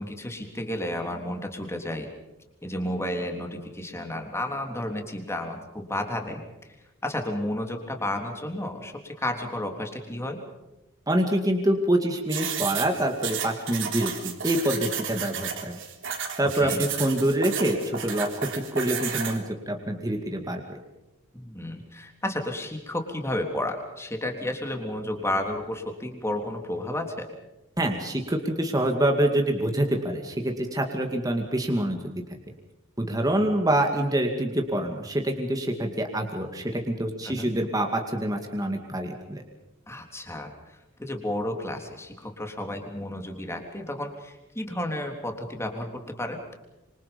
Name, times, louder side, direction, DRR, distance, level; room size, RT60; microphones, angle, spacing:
voice 1, 0.0-2.1 2.6-6.4 7.0-10.4 16.5-16.8 21.3-27.3 37.2-37.5 39.9-46.4, left 1 dB, 10° left, 3 dB, 3.5 m, -32 dB
voice 2, 11.1-15.8 16.4-20.8 27.8-32.0 33.0-39.4, right 1 dB, 15° right, 3 dB, 2.3 m, -26 dB
sound 1, 12.3-19.4, right 8 dB, 60° right, 3.5 m, -32 dB
26.5 x 25.5 x 5.4 m, 0.97 s
head